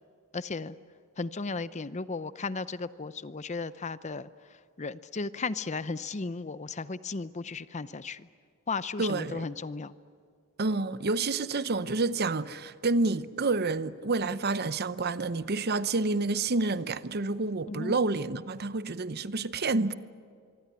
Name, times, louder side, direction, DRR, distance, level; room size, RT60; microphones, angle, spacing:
voice 1, 0.3-0.8 1.2-8.3 8.7-9.9 17.7-18.0, left 4 dB, 35° left, 0.7 m, -35 dB
voice 2, 9.0-9.5 10.6-19.9, right 3 dB, 50° right, 0.8 m, -29 dB
25.0 x 24.0 x 9.9 m
head